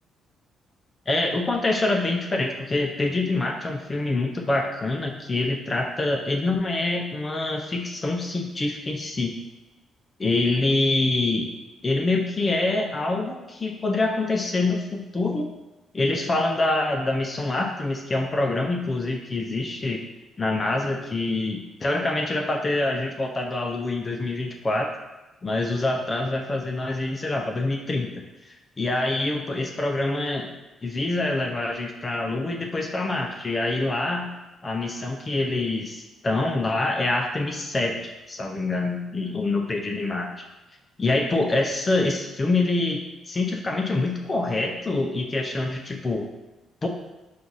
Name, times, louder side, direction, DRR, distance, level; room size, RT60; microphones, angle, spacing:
voice 1, 1.1-9.4 10.2-11.5 11.8-15.5 15.9-20.1 20.4-24.9 25.4-30.5 30.8-34.3 34.6-40.4 41.0-43.0 43.3-46.3 46.8-46.9, left 2 dB, 30° left, 2 dB, 0.5 m, -25 dB
4.5 x 2.5 x 4.0 m, 1.1 s
cardioid pair, 90°, 0 cm